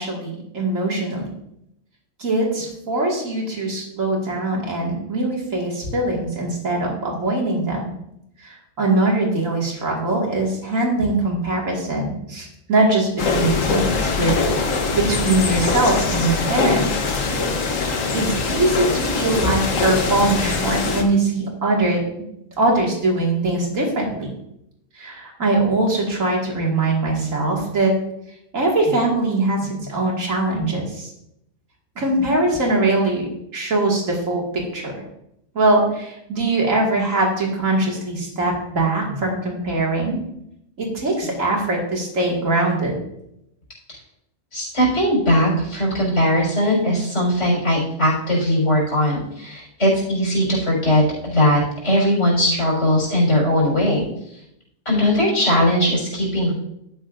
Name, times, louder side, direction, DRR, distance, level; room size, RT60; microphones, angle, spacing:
voice 1, 0.0-1.3 2.2-7.8 8.4-17.2 18.1-22.0 22.6-24.3 25.0-28.0 28.5-31.1 32.0-35.0 35.5-40.2 40.8-43.0, right 2 dB, 90° right, -2 dB, 2.6 m, -22 dB
sound 1, 13.2-21.0, left 4 dB, 80° left, 1.5 m, -22 dB
voice 2, 44.5-54.0 54.8-56.5, equal, 65° left, -3 dB, 4.8 m, -19 dB
12.0 x 9.1 x 2.6 m, 0.78 s
omnidirectional pair, 1.3 m